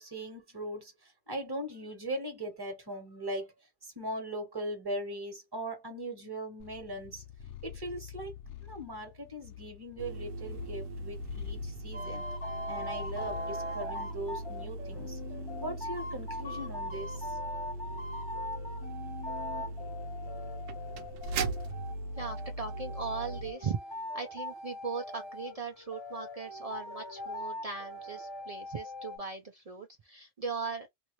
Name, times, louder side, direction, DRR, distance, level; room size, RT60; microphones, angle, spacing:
voice 1, 0.0-3.5 3.8-7.2 7.6-8.3 8.6-12.3 12.7-15.2 15.6-17.4, right 1 dB, 20° right, 1.2 m, -39 dB
Purr, 6.6-13.5, left 10 dB, 70° left, 0.9 m, -47 dB
sound 1, 10.0-23.5, right 2 dB, 85° right, 1.0 m, -39 dB
sound 2, 11.9-29.2, left 1 dB, 25° left, 0.9 m, -41 dB
voice 2, 22.2-23.8 24.1-30.9, right 4 dB, 60° right, 0.4 m, -38 dB
2.8 x 2.6 x 3.0 m
omnidirectional pair, 1.3 m